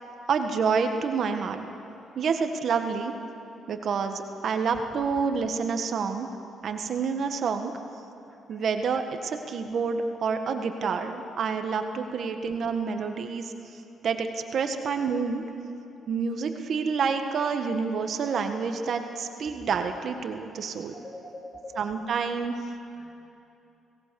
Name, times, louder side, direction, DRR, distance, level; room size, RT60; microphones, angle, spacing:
voice 1, 0.3-1.6 2.1-3.1 3.7-6.3 6.6-7.7 8.5-13.5 14.0-15.4 16.1-20.9 21.7-22.6, right 5 dB, 60° right, 6 dB, 1.6 m, -28 dB
voice 2, 8.3-8.6 20.9-21.8 22.9-23.1, left 1 dB, 25° left, 0 dB, 3.9 m, -44 dB
25.5 x 18.5 x 7.0 m, 2.8 s
cardioid pair, 90°, 0 cm